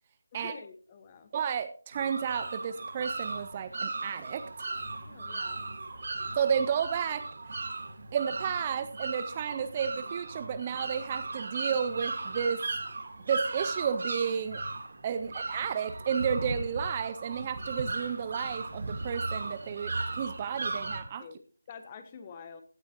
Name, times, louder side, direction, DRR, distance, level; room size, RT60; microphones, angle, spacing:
voice 1, 0.3-1.3 5.0-5.7 15.1-15.3 21.2-22.6, left 6 dB, 20° left, 9 dB, 1.1 m, -48 dB
voice 2, 1.3-4.7 6.4-7.3 8.1-12.6 13.3-14.6 15.0-21.3, right 7 dB, 20° right, 11 dB, 0.5 m, -32 dB
sound 1, 1.9-21.0, right 3 dB, 50° right, 1.8 m, -37 dB
16.5 x 12.0 x 2.9 m, 0.40 s
figure-of-eight pair, 165°, 0 cm